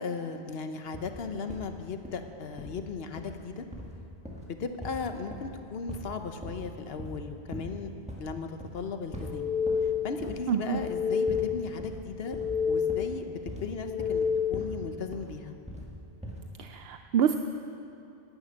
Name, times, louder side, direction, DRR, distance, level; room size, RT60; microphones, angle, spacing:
voice 1, 0.0-3.7 4.4-7.9 8.2-9.5 10.0-12.4 12.7-15.5, left 5 dB, 75° left, 7 dB, 1.1 m, -37 dB
sound 1, 0.9-1.7 2.0-2.2 2.6-2.8 3.2-3.4 3.7-5.6 5.9-6.1 6.4-6.7 7.0-7.2 7.5-7.8 8.1-8.3 8.6-8.9 9.1-9.9 10.2-10.5 10.7-11.0 11.3-11.5 11.8-14.8 15.1-15.9 16.2-16.5, equal, 5° right, 1.7 m, -41 dB
sound 2, 9.1-10.2 10.6-11.7 12.1-13.2 13.6-14.8, left 6 dB, 10° left, 4.2 m, -30 dB
voice 2, 10.5-10.8 16.6-17.4, right 8 dB, 75° right, 7 dB, 0.8 m, -27 dB
11.5 x 10.5 x 9.0 m, 2.6 s
omnidirectional pair, 1.0 m